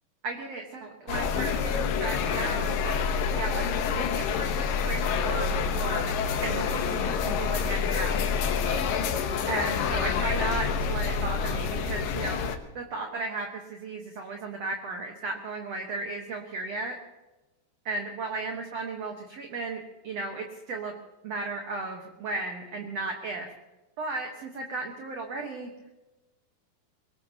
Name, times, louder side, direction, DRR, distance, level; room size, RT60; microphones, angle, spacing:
voice 1, 0.2-3.0 3.3-8.3 9.5-12.4 12.7-17.0 17.9-21.0 21.2-23.5 24.0-25.7, right 3 dB, 60° right, 2 dB, 1.7 m, -35 dB
sound 1, 1.1-12.6, left 6 dB, 70° left, 2.4 m, -27 dB
24.0 x 20.5 x 3.0 m, 1.1 s
omnidirectional pair, 4.8 m